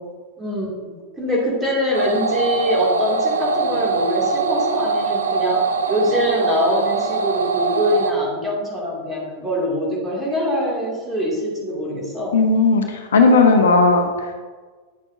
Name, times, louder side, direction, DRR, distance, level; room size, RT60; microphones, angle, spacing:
voice 1, 0.4-12.3, equal, 15° right, -4 dB, 2.4 m, -23 dB
sound 1, 1.9-8.1, right 4 dB, 70° right, 0.5 m, -22 dB
voice 2, 12.3-14.3, left 3 dB, 65° left, 4 dB, 0.8 m, -15 dB
9.1 x 7.0 x 2.7 m, 1.4 s
figure-of-eight pair, 90°, 0 cm